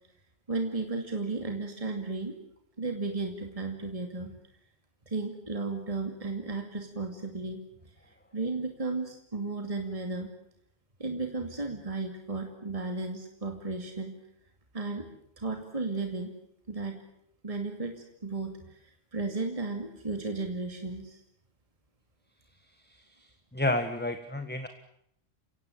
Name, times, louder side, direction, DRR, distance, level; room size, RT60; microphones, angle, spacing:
voice 1, 0.5-2.3 2.8-4.3 5.1-7.6 8.1-10.3 11.0-14.1 14.7-15.1 15.4-16.3 16.7-17.0 17.4-21.2, right 3 dB, 30° right, 4 dB, 2.6 m, -34 dB
voice 2, 22.8-24.7, left 1 dB, 10° left, 8 dB, 1.4 m, -32 dB
30.0 x 17.0 x 9.2 m, 0.75 s
omnidirectional pair, 1.3 m